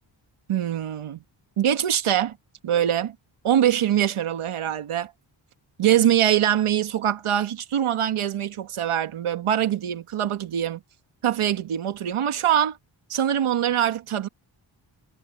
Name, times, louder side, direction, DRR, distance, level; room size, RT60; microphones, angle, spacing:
voice 1, 0.5-1.2 1.6-2.4 2.6-3.1 3.4-5.1 5.8-10.8 11.2-12.8 13.1-14.3, right 10 dB, 85° right, 1.6 m, -23 dB
cardioid pair, 55°, 49 cm